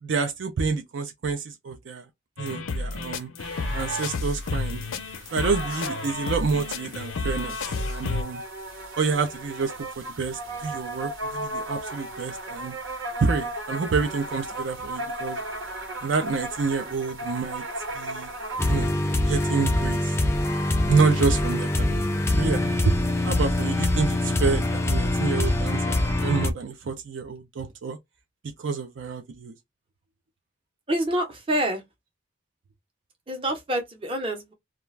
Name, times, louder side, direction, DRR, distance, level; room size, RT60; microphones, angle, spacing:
voice 1, 0.0-2.1 2.4-3.3 3.7-4.8 5.3-7.6 7.9-8.4 9.0-12.7 13.2-15.4 16.0-17.6 17.9-18.3 18.7-18.9 19.3-20.1 20.9-22.0 22.4-23.0 23.2-25.9 26.2-28.0 28.6-29.5, right 4 dB, 65° right, 0.5 m, -28 dB
sound 1, 2.4-8.2, left 3 dB, 80° left, 0.5 m, -31 dB
sound 2, 3.4-18.8, right 1 dB, 85° right, 1.1 m, -36 dB
sound 3, 18.6-26.5, left 1 dB, 15° left, 0.3 m, -24 dB
voice 2, 30.9-31.8 33.3-34.5, right 1 dB, 25° right, 0.7 m, -27 dB
2.4 x 2.2 x 3.1 m
head